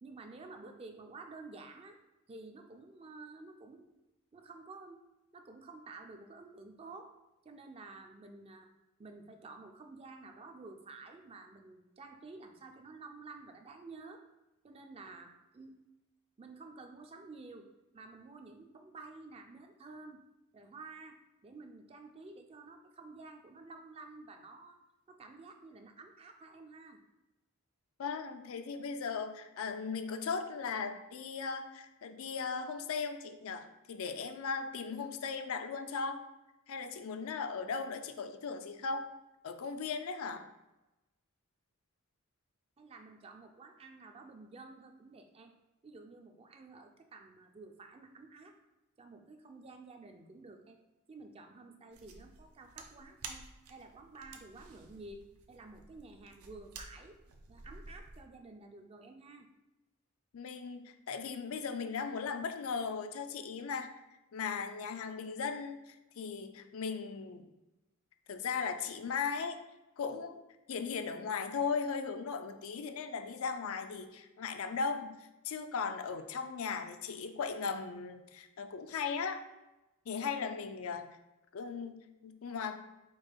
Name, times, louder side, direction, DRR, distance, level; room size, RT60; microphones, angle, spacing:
voice 1, 0.0-2.0 2.3-3.9 4.3-5.0 5.3-7.1 7.4-8.7 9.0-14.2 14.6-15.8 16.4-17.7 17.9-20.2 20.5-24.8 25.1-27.0 42.8-45.5 45.8-48.6 49.0-50.8 51.1-57.2 57.5-59.5, right 3 dB, 25° right, 5 dB, 0.4 m, -51 dB
voice 2, 28.0-36.2 36.7-39.1 39.4-40.4 60.3-63.9 64.3-67.5 68.3-69.6 70.0-70.4 70.7-79.4 80.1-81.1 81.5-82.8, left 5 dB, 70° left, 8 dB, 0.4 m, -37 dB
sound 1, 51.9-58.2, right 4 dB, 75° right, 0.6 m, -52 dB
4.7 x 2.5 x 4.5 m, 1.0 s
head